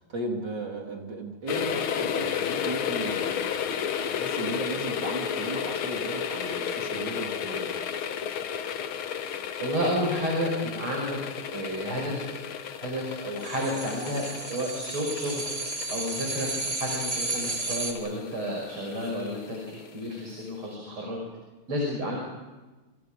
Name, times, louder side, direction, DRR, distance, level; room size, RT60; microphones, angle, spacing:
voice 1, 0.0-7.8, right 2 dB, 50° right, 0 dB, 3.7 m, -36 dB
sound 1, 1.5-20.1 20.4-20.5, left 8 dB, 75° left, 2.0 m, -33 dB
voice 2, 9.6-11.2 11.5-12.3 12.8-15.5 15.9-16.5 16.8-21.2 21.7-22.2, equal, 75° right, -1 dB, 6.5 m, -31 dB
sound 2, 13.4-17.9, right 2 dB, 25° right, 3.1 m, -33 dB
29.5 x 28.5 x 5.2 m, 1.2 s
omnidirectional pair, 2.4 m